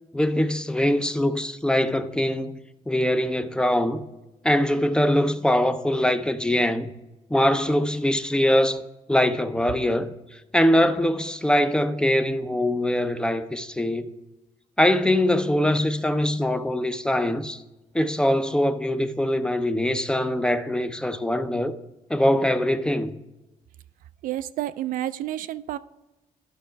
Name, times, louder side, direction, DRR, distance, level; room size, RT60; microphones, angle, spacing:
voice 1, 0.1-2.6 2.9-4.0 4.4-6.9 7.3-8.8 9.1-10.1 10.5-14.1 14.8-17.6 17.9-21.7 22.1-23.1, left 1 dB, 5° left, 0.5 m, -22 dB
voice 2, 24.2-25.8, right 13 dB, 75° right, 0.4 m, -30 dB
12.0 x 5.6 x 3.3 m
cardioid pair, 125°, 14 cm